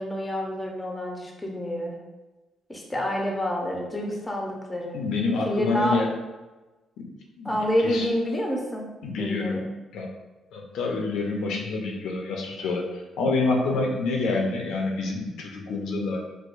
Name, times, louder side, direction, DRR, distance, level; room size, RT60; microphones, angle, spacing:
voice 1, 0.0-2.0 2.7-5.1 5.4-6.0 7.4-8.9 9.2-9.6 13.7-13.8, equal, 10° left, 0 dB, 0.6 m, -28 dB
voice 2, 4.9-6.1 7.0-7.1 7.4-7.5 7.8-8.1 9.0-9.7 9.9-10.1 10.5-12.9 13.2-16.2, left 3 dB, 90° left, 1 dB, 0.6 m, -27 dB
4.6 x 2.1 x 2.5 m, 1.2 s
cardioid pair, 135°, 0 cm